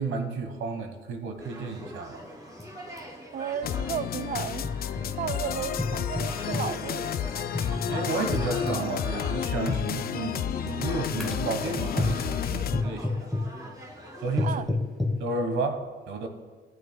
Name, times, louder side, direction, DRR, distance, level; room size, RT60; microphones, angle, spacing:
voice 1, 0.0-2.2 7.9-13.3 14.2-14.6 15.2-16.3, right 3 dB, 75° right, 1.3 m, -32 dB
sound 1, 1.4-14.6, equal, 20° right, 2.8 m, -43 dB
sound 2, 2.6-2.7 3.0-3.1 3.9-5.1 5.8-6.7 7.5-8.9 9.7-9.9 10.7-10.9 11.2-11.5 12.0-12.3 12.7-13.5 14.4-15.2, left 2 dB, ahead, 1.3 m, -30 dB
voice 2, 3.3-4.7 5.2-7.2 14.4-14.7, right 9 dB, 40° right, 0.4 m, -34 dB
sound 3, 3.6-12.8, left 9 dB, 50° left, 0.4 m, -31 dB
14.0 x 9.3 x 2.2 m
cardioid pair, 90°, 20 cm